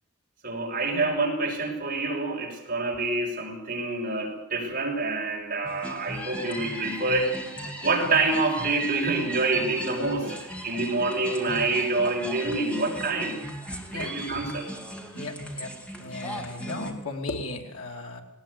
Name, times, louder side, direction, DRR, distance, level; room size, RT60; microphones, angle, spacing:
voice 1, 0.4-7.3 7.8-13.4 13.9-14.6, right 3 dB, 45° right, 0 dB, 5.8 m, -27 dB
sound 1, 5.6-16.9, equal, 5° left, 2.6 m, -37 dB
voice 2, 13.9-14.4 15.1-15.7 16.0-18.2, left 2 dB, 75° left, 2 dB, 2.8 m, -36 dB
20.0 x 18.5 x 8.4 m, 0.95 s
head